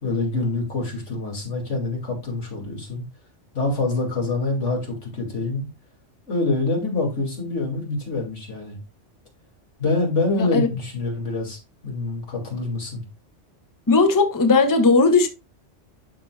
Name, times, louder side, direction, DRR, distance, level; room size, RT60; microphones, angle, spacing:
voice 1, 0.0-3.0 3.5-5.7 6.3-8.8 9.8-13.0, left 2 dB, 85° left, 2.8 m, -26 dB
voice 2, 10.4-10.7 13.9-15.3, left 3 dB, 20° left, 0.8 m, -17 dB
12.0 x 4.9 x 2.3 m
omnidirectional pair, 1.2 m